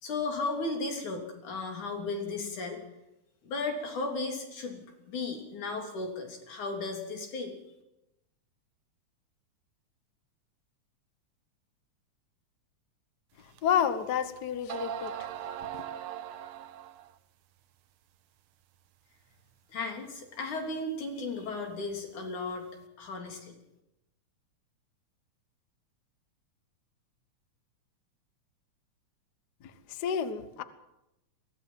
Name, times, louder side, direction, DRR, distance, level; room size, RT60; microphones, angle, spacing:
voice 1, 0.0-2.8 3.4-7.6 19.7-22.7 23.0-23.5, left 3 dB, 75° left, 3 dB, 4.8 m, -35 dB
voice 2, 13.6-15.1 15.7-15.8 29.9-30.6, left 8 dB, 55° left, 12 dB, 1.1 m, -29 dB
sound 1, 13.6-13.7 14.4-14.5 14.7-17.2, right 10 dB, 70° right, 1.3 m, -39 dB
22.5 x 16.5 x 7.6 m, 0.88 s
omnidirectional pair, 3.5 m